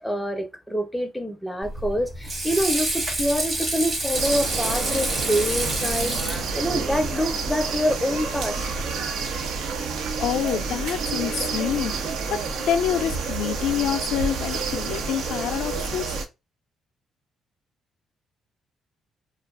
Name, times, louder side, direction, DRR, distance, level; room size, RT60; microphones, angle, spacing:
voice 1, 0.0-8.9, equal, 5° left, 0.5 m, -26 dB
Water / Sink (filling or washing), 1.6-7.1, right 1 dB, 40° right, 1.1 m, -28 dB
sound 1, 4.1-16.3, right 4 dB, 80° right, 0.5 m, -29 dB
voice 2, 10.2-12.4 12.7-16.1, left 10 dB, 80° left, 0.3 m, -27 dB
2.4 x 2.2 x 2.3 m
cardioid pair, 90°, 0 cm